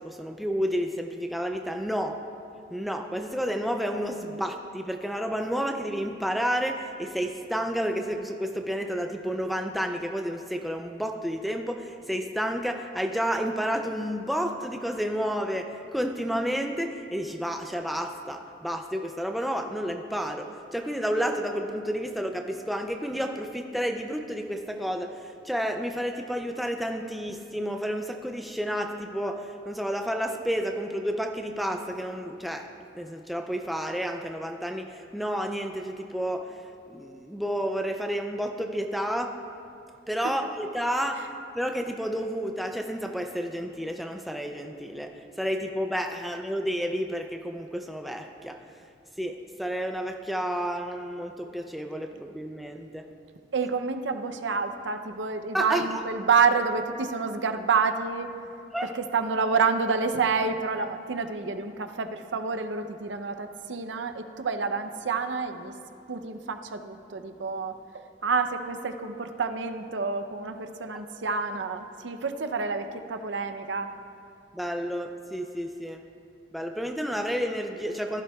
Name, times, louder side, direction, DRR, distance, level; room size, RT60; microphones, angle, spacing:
voice 1, 0.0-2.2 2.7-25.2 25.4-32.7 32.9-36.5 36.9-39.3 40.1-45.1 45.4-48.6 49.2-53.0 55.5-56.0 58.7-58.9 74.5-76.0 76.5-78.2, equal, ahead, 3 dB, 0.4 m, -30 dB
voice 2, 53.5-58.3 58.8-65.7 66.1-73.9, right 5 dB, 85° right, 8 dB, 0.6 m, -28 dB
16.0 x 12.0 x 2.3 m, 2.5 s
head